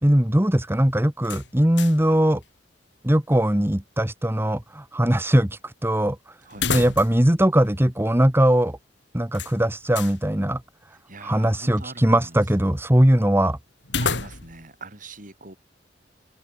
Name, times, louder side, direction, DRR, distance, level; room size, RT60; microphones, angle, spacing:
voice 1, 0.0-2.4 3.0-6.2 6.7-8.8 9.1-10.6 11.2-13.6, right 1 dB, 15° right, 1.6 m, -20 dB
sound 1, 1.2-2.1 2.4-2.5 6.5-7.3 7.6-7.7 9.3-10.2 13.8-14.7, left 5 dB, 85° left, 3.4 m, -30 dB
voice 2, 10.9-12.4 14.0-15.6, right 3 dB, 50° right, 7.9 m, -43 dB
head